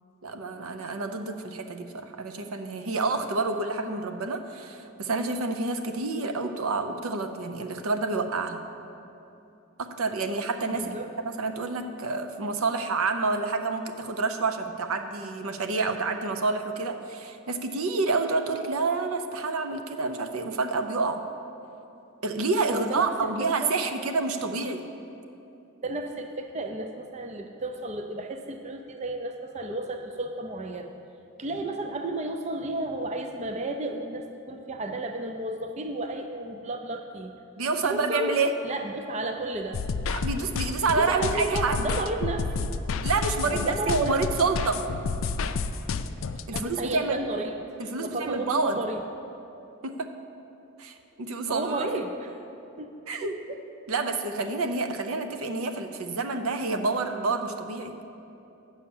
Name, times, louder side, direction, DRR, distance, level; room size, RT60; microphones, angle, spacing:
voice 1, 0.2-8.6 9.8-10.9 11.2-21.2 22.2-24.9 37.6-38.5 40.1-41.9 43.0-44.9 46.5-47.2 47.8-48.8 49.8-50.1 50.8-51.9 53.1-53.4 53.9-58.0, right 3 dB, 80° right, 7 dB, 0.6 m, -28 dB
voice 2, 10.7-11.1 22.7-23.3 23.6-23.8 25.8-30.9 31.4-37.3 37.8-38.4 38.6-39.8 40.9-42.7 43.5-44.2 46.5-47.5 48.0-49.0 51.5-52.3 52.8-52.9 53.2-53.6, right 2 dB, 30° right, 6 dB, 0.4 m, -33 dB
sound 1, 39.7-46.6, left 4 dB, 65° left, 0.4 m, -30 dB
8.5 x 5.6 x 7.1 m, 2.9 s
head